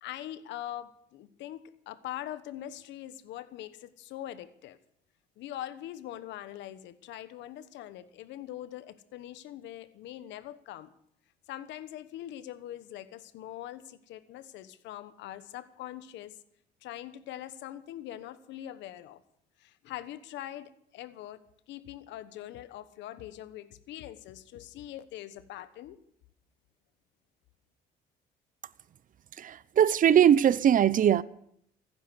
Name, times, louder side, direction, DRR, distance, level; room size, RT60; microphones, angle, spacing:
voice 1, 0.0-4.8 5.4-10.9 11.5-16.4 16.8-19.2 19.6-21.4 21.7-26.0, left 12 dB, 75° left, 1.2 m, -42 dB
voice 2, 29.4-31.2, right 9 dB, 45° right, 0.7 m, -21 dB
15.0 x 10.5 x 7.8 m
supercardioid pair, 85°, 19 cm